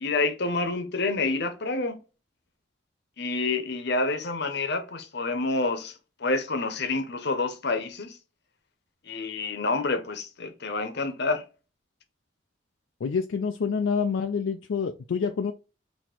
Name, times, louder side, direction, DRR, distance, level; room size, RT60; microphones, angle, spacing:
voice 1, 0.0-1.9 3.2-8.2 9.1-11.4, left 3 dB, 60° left, 0.8 m, -28 dB
voice 2, 13.0-15.5, left 5 dB, 80° left, 0.4 m, -27 dB
4.2 x 2.9 x 4.4 m
head